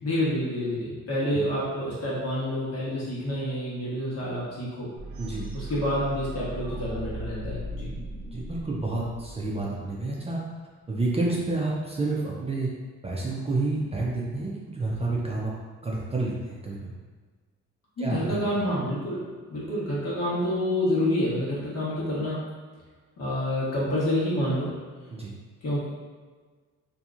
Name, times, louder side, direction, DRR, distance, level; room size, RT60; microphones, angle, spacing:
voice 1, 0.0-4.9 5.5-8.0 18.0-19.2 19.5-22.4 23.2-24.7 25.6-25.9, left 1 dB, 55° left, -7 dB, 1.3 m, -28 dB
sound 1, 5.0-9.9, right 2 dB, 90° right, 0.6 m, -38 dB
voice 2, 8.3-10.4 10.9-12.7 13.0-15.5 15.8-16.9 18.0-18.4 25.1-25.3, right 2 dB, 20° right, -4 dB, 0.5 m, -29 dB
2.9 x 2.6 x 2.4 m, 1.4 s
cardioid pair, 90°, 30 cm